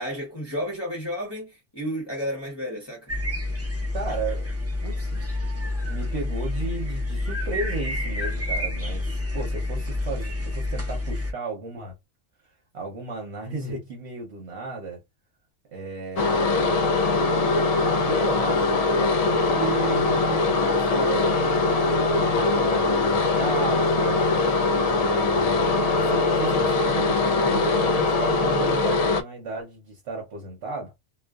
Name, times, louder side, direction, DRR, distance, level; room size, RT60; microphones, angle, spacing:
voice 1, 0.0-3.1, equal, 25° left, 0.8 m, -32 dB
sound 1, 3.1-11.3, left 2 dB, 20° right, 0.4 m, -28 dB
voice 2, 3.9-4.5 4.8-5.3 5.9-11.9 12.7-15.0 15.7-16.9 18.0-24.2 24.9-30.9, right 3 dB, 65° right, 1.0 m, -34 dB
sound 2, 16.2-29.2, left 3 dB, 85° left, 0.3 m, -22 dB
2.4 x 2.3 x 2.3 m
omnidirectional pair, 1.2 m